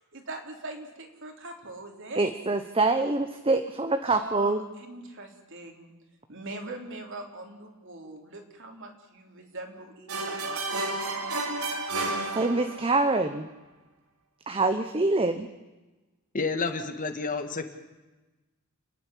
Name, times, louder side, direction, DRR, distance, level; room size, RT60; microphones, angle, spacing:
voice 1, 0.1-2.3 4.0-5.9 6.3-11.4, right 2 dB, 60° right, 3 dB, 3.7 m, -42 dB
voice 2, 2.2-4.6 12.3-13.5 14.5-15.5, right 3 dB, 25° right, 8 dB, 0.9 m, -25 dB
sound 1, 10.1-13.0, right 2 dB, 85° right, 3.0 m, -31 dB
voice 3, 16.3-17.7, left 4 dB, 35° left, 7 dB, 1.9 m, -30 dB
30.0 x 10.5 x 10.0 m, 1.1 s
head